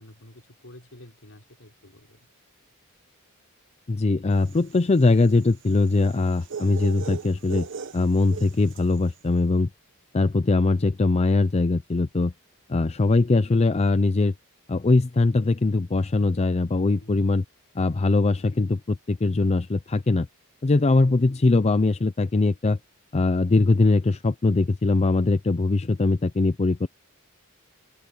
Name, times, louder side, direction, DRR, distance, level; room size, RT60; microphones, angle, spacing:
voice 1, 0.0-2.2 17.0-17.2, left 1 dB, 65° left, 4.5 m, -49 dB
voice 2, 3.9-7.7 7.9-9.7 10.1-12.3 12.7-14.3 14.7-17.4 17.8-20.3 20.6-22.8 23.1-26.9, left 3 dB, 30° left, 0.5 m, -21 dB
sound 1, 4.4-9.0, right 6 dB, 60° right, 1.0 m, -38 dB
open air
head